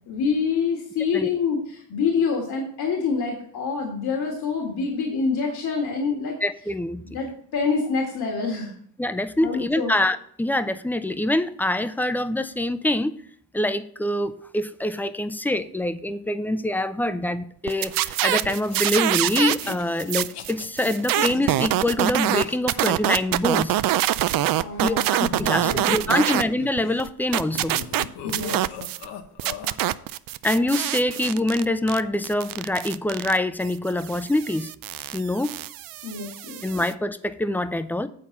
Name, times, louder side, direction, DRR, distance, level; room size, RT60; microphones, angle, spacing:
voice 1, 0.1-6.4 7.1-8.7 9.4-9.9 24.6-25.1 25.4-26.3 28.2-28.8 36.0-36.6, left 5 dB, 65° left, 0 dB, 1.9 m, -26 dB
voice 2, 6.4-7.0 9.0-13.2 13.5-23.7 24.8-27.8 30.4-34.7 35.1-35.6 36.6-38.1, left 1 dB, 5° left, 12 dB, 0.5 m, -25 dB
sound 1, 17.7-19.7 20.0-26.4 26.8-29.1 29.4-36.9, right 14 dB, 60° right, 0.5 m, -25 dB
sound 2, 18.3-22.9 24.7-27.0 27.3-29.8, left 9 dB, 85° left, 1.0 m, -39 dB
8.8 x 4.1 x 7.1 m, 0.62 s
cardioid pair, 90°, 40 cm